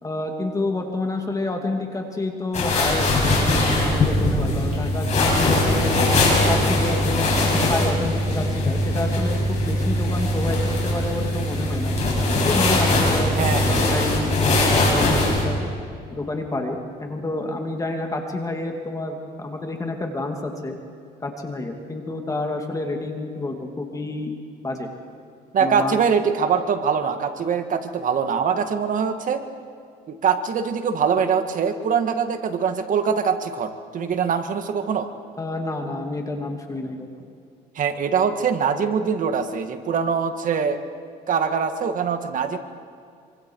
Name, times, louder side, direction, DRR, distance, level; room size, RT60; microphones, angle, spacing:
voice 1, 0.0-6.0 6.5-12.0 12.4-15.6 16.1-20.8 21.2-24.3 24.6-24.9 25.6-25.9 35.4-37.1, left 2 dB, 20° left, 3 dB, 2.6 m, -29 dB
sound 1, 2.5-15.4, left 1 dB, 40° left, 7.4 m, -21 dB
voice 2, 13.4-13.8 25.5-29.4 30.1-35.1 37.8-40.8 41.3-42.6, right 6 dB, 50° right, 7 dB, 1.9 m, -23 dB
25.5 x 25.5 x 4.8 m, 2.3 s
cardioid pair, 110°, 17 cm